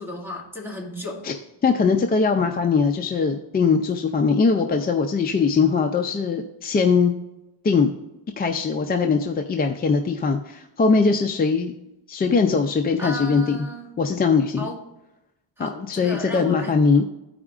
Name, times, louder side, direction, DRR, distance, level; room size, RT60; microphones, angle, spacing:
voice 1, 0.0-1.3 13.0-14.0 14.6-14.8 15.6-16.7, left 1 dB, 5° right, -2 dB, 2.1 m, -34 dB
voice 2, 1.6-7.1 7.6-7.9 8.4-11.8 12.1-13.7 14.0-14.7 15.6-17.1, left 5 dB, 20° left, 4 dB, 0.4 m, -21 dB
14.0 x 4.9 x 2.4 m, 0.91 s
cardioid pair, 110°, 45 cm